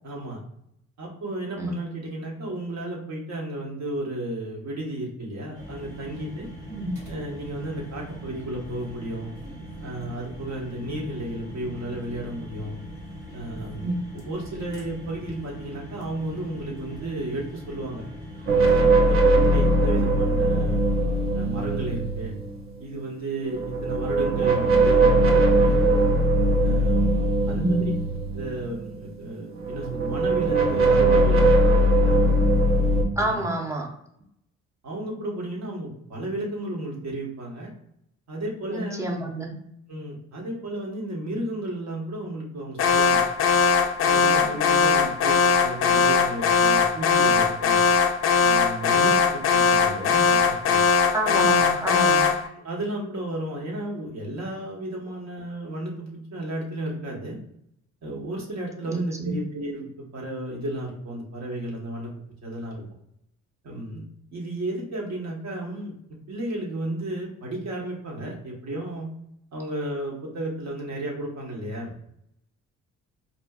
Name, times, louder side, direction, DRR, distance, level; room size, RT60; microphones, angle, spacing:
voice 1, 0.0-0.4 1.0-6.5 7.1-9.3 9.8-12.8 13.3-18.0 18.6-20.8 21.3-22.4 22.8-26.1 26.6-27.9 28.3-32.3 33.2-33.5 34.8-37.7 38.3-39.0 39.9-43.2 44.0-47.8 48.4-50.8 51.3-51.5 52.6-57.4 58.0-62.1 62.4-62.9 63.6-64.0 64.3-65.9 66.3-69.1 69.5-71.9, right 1 dB, 60° right, -2 dB, 1.1 m, -33 dB
sound 1, 5.5-18.9, equal, 90° right, 1.1 m, -41 dB
sound 2, 18.5-22.6 23.5-29.2 29.6-33.0, right 1 dB, 45° right, 0.6 m, -20 dB
voice 2, 27.5-27.9 33.2-33.9 38.7-39.5 44.4-44.5 51.1-52.3 58.9-59.3, right 1 dB, 10° right, 0 dB, 0.7 m, -28 dB
Alarm, 42.8-52.5, left 5 dB, 50° left, 0.5 m, -20 dB
4.2 x 2.5 x 2.3 m, 0.73 s
cardioid pair, 90°, 30 cm